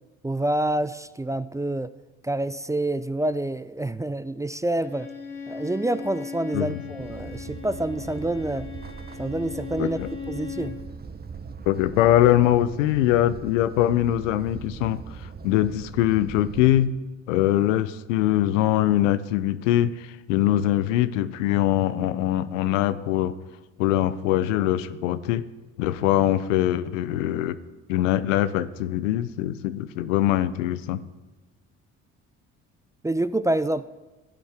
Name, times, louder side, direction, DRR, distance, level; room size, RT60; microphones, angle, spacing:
voice 1, 0.2-1.9 2.2-5.1 5.5-8.7 9.2-10.0 10.3-10.8 33.0-33.9, right 1 dB, 10° right, 14 dB, 0.3 m, -27 dB
Bowed string instrument, 4.8-10.8, left 7 dB, 30° left, 2.1 m, -38 dB
sound 1, 7.0-16.9, right 5 dB, 25° right, 0.8 m, -40 dB
voice 2, 11.7-15.0 15.4-16.9 17.3-23.3 23.8-25.4 25.8-27.6 27.9-31.0, left 13 dB, 90° left, 14 dB, 0.6 m, -22 dB
15.5 x 9.3 x 3.4 m, 1.2 s
hypercardioid pair, 55°, 37 cm